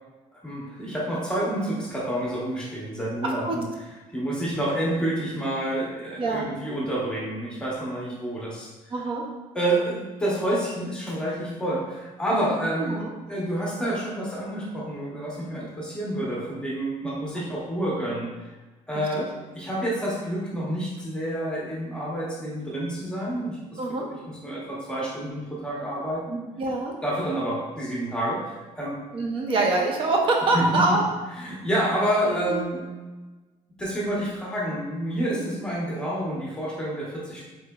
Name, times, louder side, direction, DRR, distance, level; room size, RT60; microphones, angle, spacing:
voice 1, 0.4-3.6 4.1-8.7 9.5-12.9 13.3-18.3 18.9-19.3 19.5-23.8 24.4-26.4 27.0-29.0 30.5-30.8 31.4-32.8 33.8-37.4, right 1 dB, 5° left, -6 dB, 0.8 m, -28 dB
voice 2, 3.2-3.6 6.2-6.5 8.9-9.2 12.8-13.1 17.3-17.4 18.9-19.3 23.8-24.1 26.6-26.9 29.1-31.1 32.2-32.6 35.3-35.5, right 2 dB, 40° right, 1 dB, 0.6 m, -25 dB
3.7 x 3.1 x 2.2 m, 1.2 s
cardioid pair, 150°, 13 cm